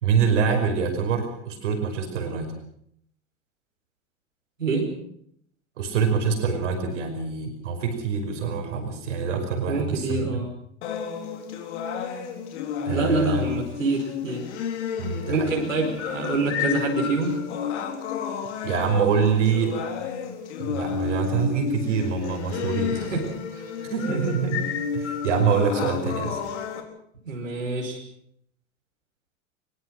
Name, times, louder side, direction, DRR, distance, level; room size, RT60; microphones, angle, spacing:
voice 1, 0.0-2.5 5.8-10.3 12.9-13.4 15.0-15.6 18.6-19.8 20.6-23.0 23.9-26.4, right 6 dB, 70° right, 5 dB, 5.3 m, -25 dB
voice 2, 4.6-4.9 9.7-10.5 12.9-14.5 15.3-17.4 23.0-23.6 24.1-24.3 27.2-28.0, right 3 dB, 85° right, -1 dB, 5.1 m, -26 dB
sound 1, 10.8-26.8, left 7 dB, 65° left, 3.8 m, -31 dB
23.0 x 21.5 x 6.3 m, 0.67 s
figure-of-eight pair, 80°, 38 cm